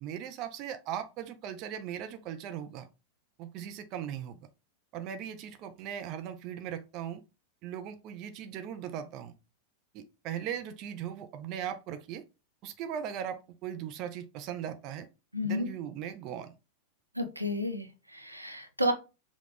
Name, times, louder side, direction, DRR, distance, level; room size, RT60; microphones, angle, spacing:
voice 1, 0.0-2.9 3.4-4.4 4.9-7.2 7.6-9.3 9.9-12.2 12.6-15.1 15.4-16.5, right 9 dB, 40° right, 0.5 m, -38 dB
voice 2, 15.3-15.7 17.2-18.9, left 1 dB, 90° right, 0.7 m, -31 dB
5.7 x 2.4 x 3.8 m
figure-of-eight pair, 90°, 0 cm